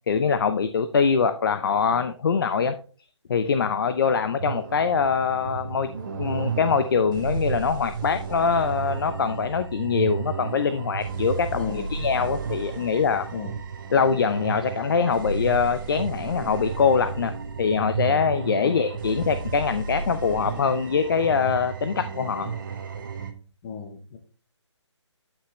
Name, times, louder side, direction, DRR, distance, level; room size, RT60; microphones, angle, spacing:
voice 1, 0.1-2.7 3.3-5.9 6.1-13.3 13.9-17.3 17.6-22.5, left 6 dB, 50° left, 10 dB, 0.6 m, -23 dB
sound 1, 4.4-23.3, right 5 dB, 40° right, 1.2 m, -33 dB
voice 2, 11.5-12.0 13.3-13.5 18.6-18.8 23.6-24.2, left 5 dB, 25° left, 7 dB, 1.1 m, -34 dB
9.6 x 5.9 x 3.2 m, 0.40 s
figure-of-eight pair, 150°, 16 cm